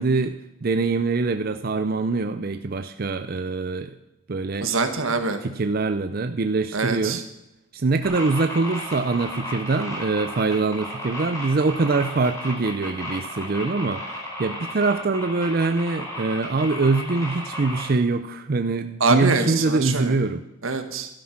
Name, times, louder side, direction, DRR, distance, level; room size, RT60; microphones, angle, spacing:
voice 1, 0.0-3.9 4.3-4.7 5.4-7.2 7.7-20.4, right 3 dB, 50° right, 9 dB, 0.5 m, -24 dB
voice 2, 4.6-5.4 6.7-7.2 19.0-20.1 20.6-21.1, right 4 dB, 90° right, 7 dB, 1.6 m, -24 dB
sound 1, 8.0-17.9, left 1 dB, 15° left, 4.4 m, -34 dB
12.0 x 11.5 x 5.9 m, 0.89 s
head